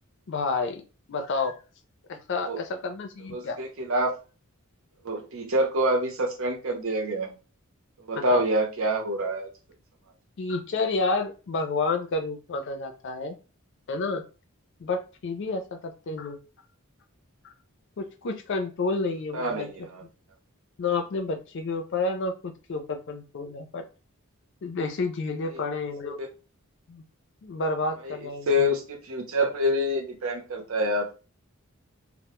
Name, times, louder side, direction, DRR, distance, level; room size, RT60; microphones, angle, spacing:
voice 1, 0.3-0.8 1.1-1.5 2.1-3.6 8.3-8.4 10.4-13.4 13.9-14.2 14.8-16.4 17.4-17.5 18.0-19.7 20.8-23.8 24.6-26.2 26.9-27.0 27.4-28.7, left 3 dB, 55° left, 6 dB, 0.4 m, -30 dB
voice 2, 3.3-4.2 5.0-7.3 8.0-9.5 19.3-20.0 25.5-25.6 26.2-26.3 28.0-28.1 28.5-31.1, equal, 65° right, 2 dB, 0.7 m, -26 dB
2.1 x 2.0 x 2.9 m, 0.33 s
head